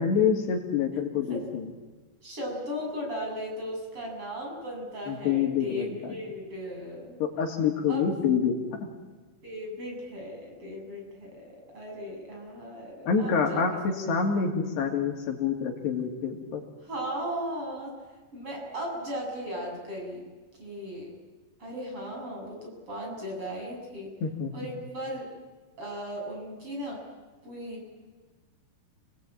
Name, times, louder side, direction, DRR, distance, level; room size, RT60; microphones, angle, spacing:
voice 1, 0.0-1.7 5.1-6.1 7.2-8.9 13.1-13.7 14.1-16.6 24.2-24.5, left 6 dB, 75° left, 2 dB, 4.8 m, -27 dB
voice 2, 2.2-7.2 7.9-8.0 9.4-13.6 16.8-18.0 18.3-20.3 20.6-21.1 21.6-24.1 24.5-25.3 25.8-27.0 27.4-27.8, equal, 30° right, 0 dB, 8.0 m, -36 dB
29.5 x 20.5 x 8.8 m, 1.3 s
omnidirectional pair, 5.0 m